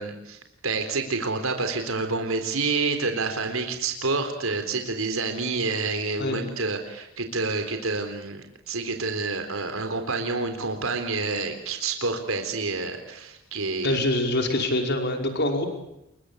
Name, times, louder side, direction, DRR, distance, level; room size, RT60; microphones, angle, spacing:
voice 1, 0.0-14.0, right 3 dB, 85° right, 6 dB, 3.9 m, -28 dB
voice 2, 13.8-15.7, left 1 dB, 55° left, 4 dB, 5.3 m, -24 dB
28.5 x 23.0 x 8.5 m, 0.85 s
head